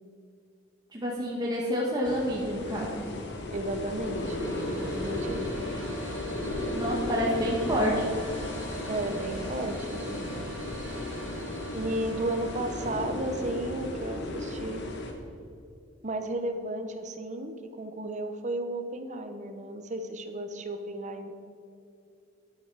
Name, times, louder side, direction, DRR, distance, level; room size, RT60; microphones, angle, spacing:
voice 1, 0.9-3.1 6.7-8.1, equal, 20° right, -4 dB, 1.2 m, -28 dB
sound 1, 2.0-15.1, left 1 dB, 60° left, 1.3 m, -35 dB
voice 2, 3.5-4.4 4.7-5.5 8.9-10.4 11.7-14.9 16.0-21.3, right 1 dB, 35° right, 7 dB, 0.8 m, -34 dB
sound 2, 3.7-14.0, left 1 dB, 75° right, 1.7 m, -41 dB
9.9 x 8.4 x 4.7 m, 2.6 s
head